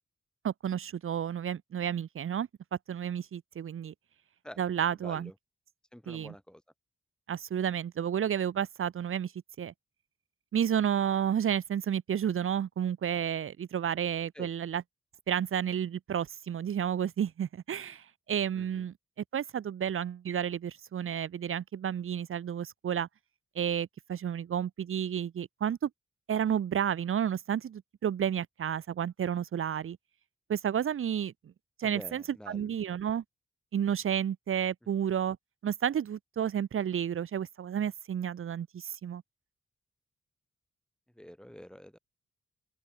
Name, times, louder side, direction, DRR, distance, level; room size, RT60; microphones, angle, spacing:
voice 1, 0.4-2.5 2.9-3.9 4.6-5.3 6.1-6.3 7.3-9.3 9.6-9.7 10.5-14.8 15.3-18.9 19.3-23.1 23.5-25.9 26.3-30.0 30.5-31.3 31.8-33.2 33.7-35.4 35.6-39.2, right 9 dB, 80° right, 1.5 m, -31 dB
voice 2, 5.0-5.3 5.9-6.6 14.3-14.5 18.5-18.8 31.8-32.7 41.2-42.0, equal, 5° left, 2.7 m, -47 dB
open air
wide cardioid pair, 115°, 21 cm